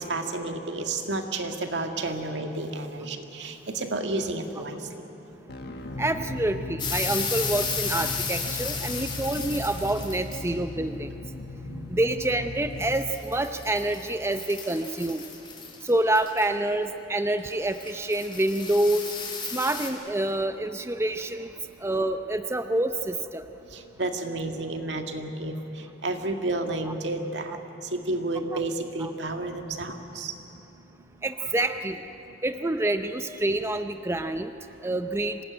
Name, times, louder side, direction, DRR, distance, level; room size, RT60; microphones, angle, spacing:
voice 1, 0.0-4.8 11.6-12.0 23.7-27.6 27.9-30.3, right 2 dB, 80° right, 5 dB, 1.9 m, -31 dB
sound 1, 5.5-14.2, left 2 dB, 60° left, 1.5 m, -37 dB
voice 2, 6.0-11.1 11.9-15.2 15.8-19.1 19.5-21.5 21.8-23.4 29.0-29.1 31.2-32.0 32.4-34.5 34.8-35.4, right 1 dB, 15° right, 8 dB, 0.6 m, -27 dB
sound 2, 6.8-10.5 12.8-16.5 17.5-19.9, left 5 dB, 30° left, 3.2 m, -34 dB
26.0 x 18.5 x 9.1 m, 3.0 s
head